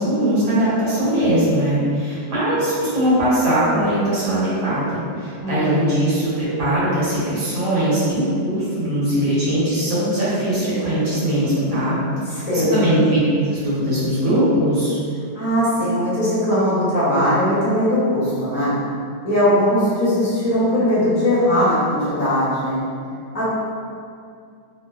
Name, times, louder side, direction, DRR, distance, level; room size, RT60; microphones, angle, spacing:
voice 1, 0.0-12.0 12.3-13.2 13.5-15.0, right 1 dB, 65° right, -11 dB, 1.4 m, -20 dB
voice 2, 5.4-5.9 12.5-12.9 15.3-18.8 19.2-22.8 23.3-23.5, equal, 25° left, -13 dB, 0.9 m, -19 dB
3.4 x 2.1 x 2.3 m, 2.3 s
omnidirectional pair, 2.1 m